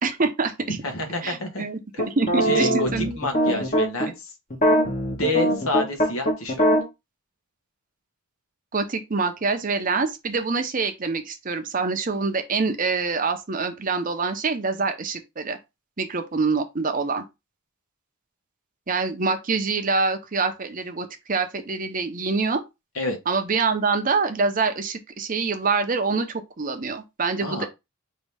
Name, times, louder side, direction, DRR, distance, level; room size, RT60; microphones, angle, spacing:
voice 1, 0.0-0.8 1.2-1.8 2.1-3.2 8.7-15.6 16.0-17.2 18.9-22.6 23.3-27.7, right 4 dB, 40° right, 0.7 m, -25 dB
voice 2, 0.8-1.6 1.9-2.0 2.4-4.3 5.1-6.7 22.9-23.2 27.4-27.7, left 1 dB, 75° left, 1.3 m, -28 dB
sound 1, 2.0-4.1 4.5-6.8, equal, 35° left, 1.3 m, -21 dB
5.3 x 2.8 x 3.4 m
head